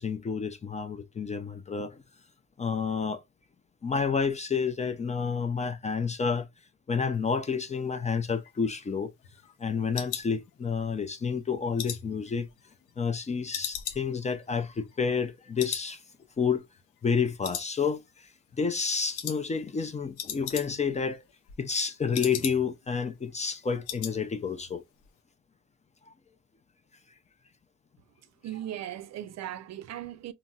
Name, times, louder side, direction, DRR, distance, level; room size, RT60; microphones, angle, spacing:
voice 1, 0.0-2.0 2.6-3.2 3.8-6.5 6.9-9.1 9.6-12.5 13.0-16.0 16.4-16.6 17.0-18.3 18.6-21.2 21.6-24.8, left 5 dB, 25° left, 0.4 m, -29 dB
sound 1, 8.3-11.0 11.4-13.2 13.5-15.3 15.6-15.9 16.2-16.3 16.8-17.2 17.4-18.2 18.5-18.8 19.2-19.4 19.7-19.8 20.0-21.0 21.3-22.9 23.2-23.3 23.6-24.2 24.5-24.7 25.0-25.1, left 10 dB, 90° left, 0.6 m, -38 dB
voice 2, 28.4-30.3, right 12 dB, 60° right, 0.4 m, -38 dB
3.9 x 2.0 x 2.3 m
cardioid pair, 90°, 30 cm